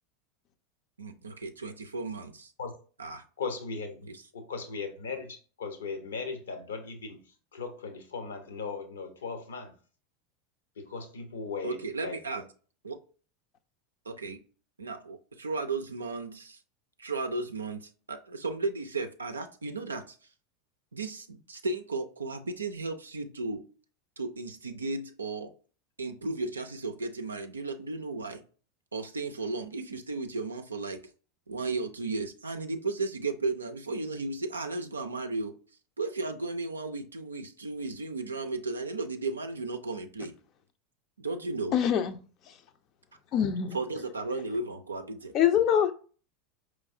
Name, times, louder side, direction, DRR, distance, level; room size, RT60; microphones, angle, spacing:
voice 1, 1.0-2.5 3.0-3.2 4.1-4.2 11.6-12.5 12.8-13.0 14.1-14.4 14.8-16.6 17.0-20.2 20.9-23.6 24.2-25.5 26.0-28.4 28.9-31.0 31.5-35.6 36.0-40.3 41.2-41.7 43.7-45.3, right 3 dB, 85° right, 7 dB, 0.4 m, -34 dB
voice 2, 3.4-7.2 7.5-9.7 10.8-12.2, left 4 dB, 75° left, 6 dB, 0.8 m, -38 dB
voice 3, 41.7-42.2 43.3-43.8 45.3-45.9, left 9 dB, 45° left, 8 dB, 0.5 m, -24 dB
4.6 x 3.1 x 2.6 m, 0.39 s
figure-of-eight pair, 85°, 0 cm